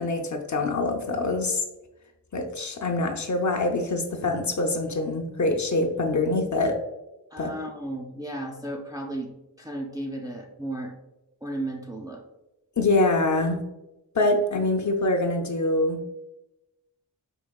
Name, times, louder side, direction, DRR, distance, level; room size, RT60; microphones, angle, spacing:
voice 1, 0.0-1.6 2.3-6.8 7.4-7.5 12.8-13.6 14.1-16.0, left 2 dB, 45° left, 3 dB, 0.7 m, -24 dB
voice 2, 7.3-9.3 9.6-10.9 11.4-12.2, right 1 dB, 10° right, 1 dB, 0.4 m, -34 dB
4.7 x 2.8 x 2.3 m, 0.98 s
cardioid pair, 50°, 41 cm